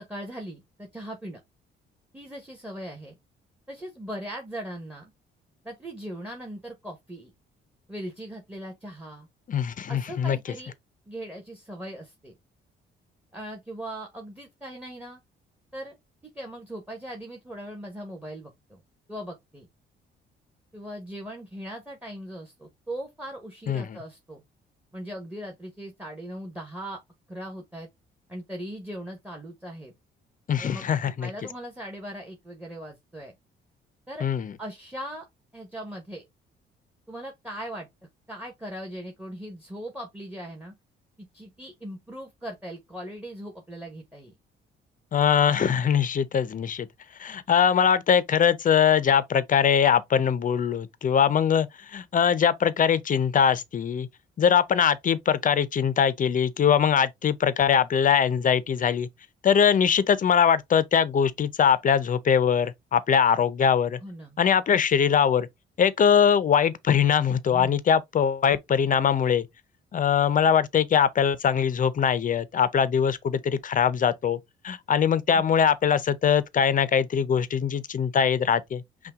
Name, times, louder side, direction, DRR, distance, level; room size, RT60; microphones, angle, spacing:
voice 1, 0.1-1.4 2.1-3.2 3.7-5.1 5.6-7.3 7.9-9.3 9.9-10.7 11.1-12.3 13.3-15.2 15.7-16.0 16.3-18.8 19.1-19.7 20.7-24.4 24.9-27.0 27.3-27.9 28.3-29.9 30.6-33.3 34.1-34.3 34.6-35.2 35.5-36.2 37.1-37.9 38.3-40.7 41.3-44.3 64.0-64.4 67.5-67.8 75.3-75.4, right 1 dB, 5° right, 1.2 m, -39 dB
voice 2, 9.5-10.4 23.7-24.0 30.5-31.3 34.2-34.6 45.1-46.9 47.2-54.1 54.4-59.1 59.4-64.0 64.4-65.5 65.8-69.5 69.9-78.8, left 7 dB, 40° left, 0.6 m, -22 dB
5.6 x 2.3 x 3.5 m
cardioid pair, 90°, 20 cm